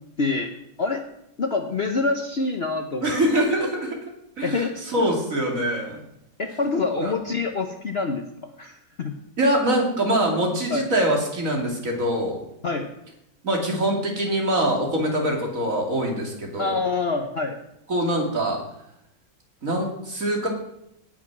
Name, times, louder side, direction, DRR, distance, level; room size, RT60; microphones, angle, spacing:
voice 1, 0.2-0.5 0.8-1.0 1.4-3.3 3.6-3.7 4.4-4.7 5.0-5.1 6.4-8.2 8.6-9.1 10.7-10.9 12.6-12.9 16.6-17.6, left 3 dB, 45° left, 5 dB, 1.0 m, -26 dB
voice 2, 3.0-4.0 4.4-6.0 7.0-7.1 9.4-12.4 13.4-16.8 17.9-18.6 19.6-20.5, right 1 dB, 50° right, 1 dB, 3.0 m, -24 dB
18.0 x 6.3 x 6.0 m, 0.79 s
omnidirectional pair, 1.8 m